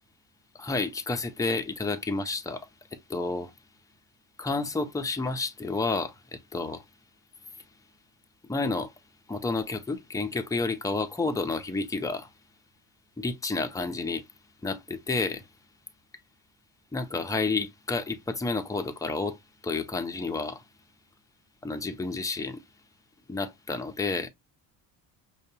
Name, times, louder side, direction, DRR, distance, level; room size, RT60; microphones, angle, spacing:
voice 1, 0.5-3.5 4.4-6.8 8.4-8.9 9.3-12.3 13.2-14.3 14.6-15.5 16.9-20.6 21.6-22.6 23.3-24.3, left 3 dB, 5° left, 0.6 m, -30 dB
5.1 x 2.2 x 2.8 m
supercardioid pair, 80°, 49 cm